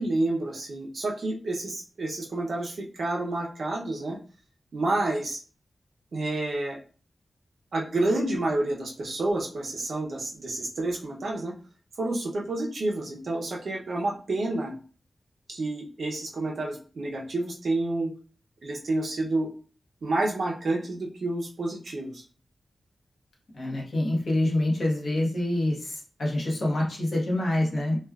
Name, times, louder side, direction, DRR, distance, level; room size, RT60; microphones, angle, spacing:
voice 1, 0.0-4.2 4.7-5.4 6.1-6.8 7.7-11.5 12.0-14.7 15.5-18.1 18.6-19.5 20.0-22.2, right 2 dB, 60° right, -1 dB, 0.6 m, -29 dB
voice 2, 23.5-28.0, left 1 dB, 55° left, -3 dB, 1.1 m, -26 dB
3.2 x 2.3 x 2.3 m, 0.39 s
wide cardioid pair, 170°, 0 cm